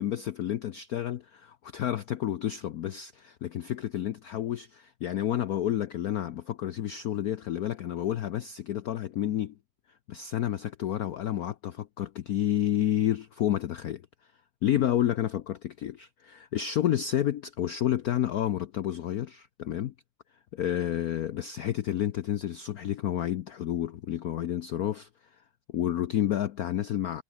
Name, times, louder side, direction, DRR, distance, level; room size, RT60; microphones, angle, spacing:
voice 1, 0.0-9.6 10.1-14.0 14.6-19.9 20.5-25.1 25.7-27.2, left 11 dB, 70° left, 0.8 m, -30 dB
omnidirectional pair, 2.4 m